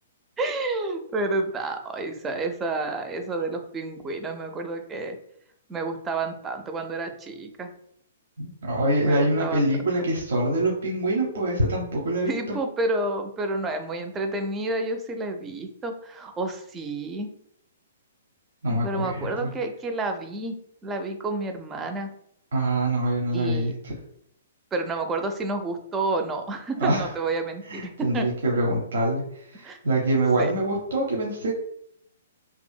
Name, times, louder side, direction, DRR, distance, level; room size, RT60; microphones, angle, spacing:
voice 1, 0.4-5.2 5.7-7.7 9.0-9.7 12.3-17.3 18.8-20.6 20.8-22.1 23.3-23.7 24.7-28.3 29.6-29.8 30.4-30.5, right 2 dB, 15° right, 5 dB, 0.4 m, -30 dB
voice 2, 8.4-12.6 18.6-19.5 22.5-23.9 26.8-27.1 27.7-31.6, right 1 dB, 70° right, -2 dB, 0.7 m, -25 dB
2.7 x 2.5 x 2.2 m, 0.70 s
hypercardioid pair, 130°, 0 cm